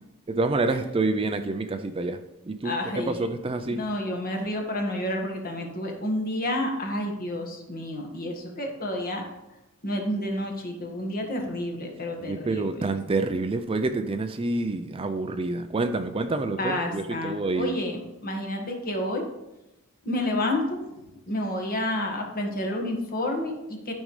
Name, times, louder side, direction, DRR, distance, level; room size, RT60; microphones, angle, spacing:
voice 1, 0.3-3.8 12.2-17.8, right 3 dB, 25° right, 8 dB, 0.4 m, -28 dB
voice 2, 2.6-3.2 3.7-9.3 9.8-12.9 16.6-19.2 20.0-23.9, left 1 dB, 45° left, 2 dB, 1.6 m, -30 dB
12.5 x 5.3 x 3.2 m, 0.96 s
head